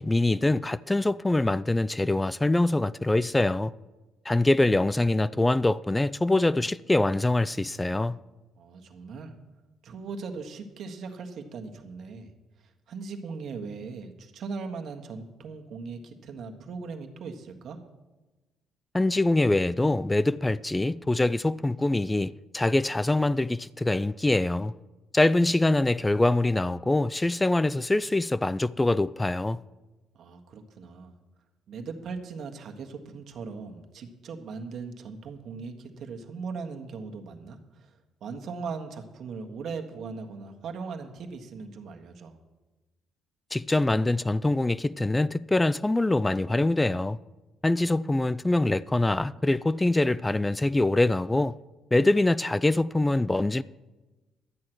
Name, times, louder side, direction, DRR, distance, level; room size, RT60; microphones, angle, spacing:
voice 1, 0.0-3.7 4.3-8.2 18.9-24.7 25.1-29.6 43.5-47.2 47.6-51.5 51.9-53.6, left 2 dB, 15° left, 0.4 m, -24 dB
voice 2, 8.6-9.3 9.8-12.3 12.6-17.8 30.1-31.1 31.7-37.9 38.2-42.3, right 4 dB, 65° right, 1.5 m, -39 dB
12.5 x 8.7 x 6.2 m
hypercardioid pair, 55°, 0 cm